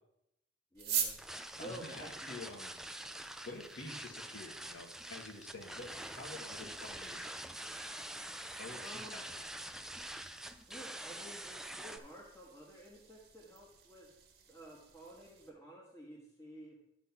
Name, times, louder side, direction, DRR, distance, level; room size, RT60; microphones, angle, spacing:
voice 1, 0.7-2.3 8.7-9.2 10.7-14.1 14.5-16.8, right 1 dB, 15° left, -4 dB, 1.5 m, -52 dB
sound 1, 0.7-15.5, right 8 dB, 60° right, 1.4 m, -47 dB
sound 2, 1.2-12.0, right 1 dB, 5° right, 0.4 m, -45 dB
voice 2, 1.5-2.7 3.4-8.1 8.6-9.2, left 2 dB, 80° left, 3 dB, 1.6 m, -49 dB
11.5 x 3.8 x 5.9 m, 0.82 s
head